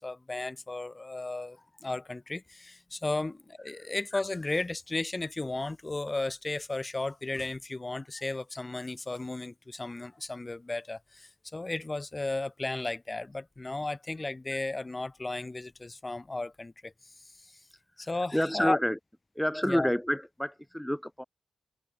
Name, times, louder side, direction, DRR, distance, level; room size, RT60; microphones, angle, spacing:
voice 1, 0.0-17.6 18.0-18.8 19.6-19.9, left 2 dB, 20° left, 7.1 m, -34 dB
voice 2, 18.3-19.0 19.3-21.2, equal, 5° left, 6.2 m, -28 dB
wide cardioid pair, 115°, 0 cm